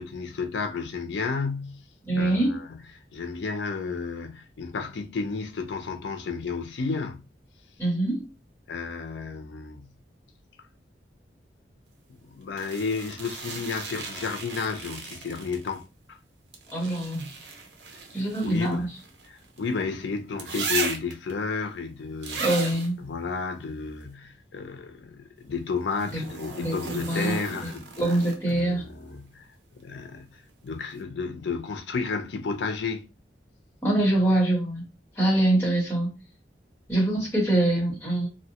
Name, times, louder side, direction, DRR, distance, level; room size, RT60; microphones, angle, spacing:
voice 1, 0.0-1.8 2.2-2.8 3.1-7.3 8.7-9.9 12.1-15.8 16.1-16.2 18.4-18.9 19.3-22.5 23.0-27.9 28.5-29.5 29.8-33.1 37.2-37.3, left 4 dB, 75° left, 0.5 m, -32 dB
voice 2, 2.0-2.6 7.8-8.3 16.7-17.3 18.1-18.9 22.4-23.0 26.1-27.4 27.6-27.7 28.0-28.8 33.8-34.8 35.2-36.1 36.9-38.3, right 1 dB, 15° left, 1.1 m, -24 dB
sound 1, 12.6-15.8 16.5-19.7 20.4-21.3 22.2-22.9 25.9-28.6 30.5-30.6, right 4 dB, 80° right, 0.6 m, -36 dB
2.7 x 2.1 x 2.8 m
head